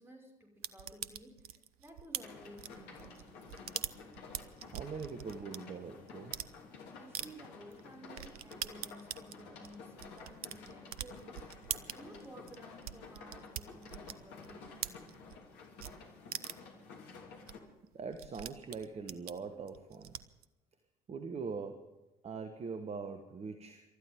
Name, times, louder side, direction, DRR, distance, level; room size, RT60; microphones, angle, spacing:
voice 1, 0.0-3.5 7.0-11.5 11.9-14.9, right 1 dB, 10° right, 1 dB, 5.8 m, -54 dB
sound 1, 0.6-5.6 6.1-6.5 7.1-7.3 7.7-7.8 8.1-15.5 15.8-15.9 16.3-16.7 17.1-17.2 17.5-17.6 17.8-20.4, right 11 dB, 75° right, 0.6 m, -43 dB
sound 2, 2.1-17.6, left 4 dB, 60° left, 2.9 m, -52 dB
voice 2, 4.7-6.4 17.9-20.2 21.1-22.0 22.2-23.8, right 5 dB, 35° right, 8 dB, 1.4 m, -42 dB
28.5 x 13.5 x 3.7 m, 1.0 s
figure-of-eight pair, 55°, 20 cm